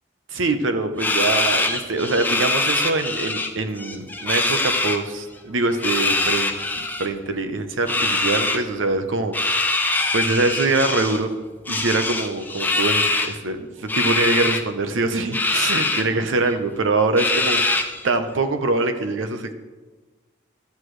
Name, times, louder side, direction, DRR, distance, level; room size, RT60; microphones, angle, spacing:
voice 1, 0.3-6.5 7.0-9.8 10.1-11.3 11.7-17.6 18.0-19.5, right 3 dB, 80° right, 8 dB, 0.8 m, -24 dB
sound 1, 1.0-3.5 3.8-5.0 5.7-7.1 7.9-8.6 9.3-11.2 11.7-13.3 13.9-14.6 15.3-16.0 16.5-16.6 17.2-18.0, left 2 dB, 10° left, 0.4 m, -23 dB
12.5 x 7.8 x 3.3 m, 1.3 s
head